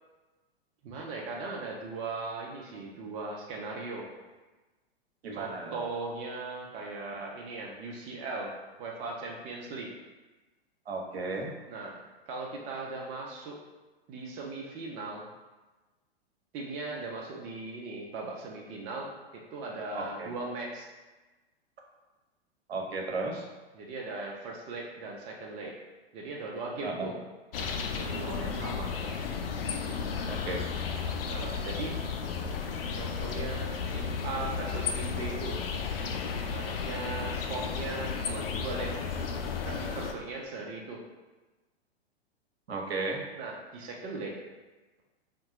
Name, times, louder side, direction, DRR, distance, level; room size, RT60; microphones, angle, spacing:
voice 1, 0.8-4.1 5.3-8.5 8.8-9.9 11.7-12.0 12.3-13.6 14.1-15.3 16.5-19.1 19.5-20.9 23.7-25.8 26.1-27.1 27.5-28.9 31.3-32.0 32.9-35.6 36.5-38.9 39.7-41.0 43.3-44.4, right 3 dB, 20° right, -2 dB, 0.3 m, -38 dB
voice 2, 5.2-5.8 10.9-11.5 19.9-20.3 22.7-23.5 26.8-27.1 30.3-30.7 42.7-43.2, right 3 dB, 75° right, 0 dB, 0.7 m, -34 dB
sound 1, 27.5-40.1, left 5 dB, 65° left, 0.4 m, -33 dB
2.8 x 2.2 x 3.7 m, 1.2 s
figure-of-eight pair, 105°, 32 cm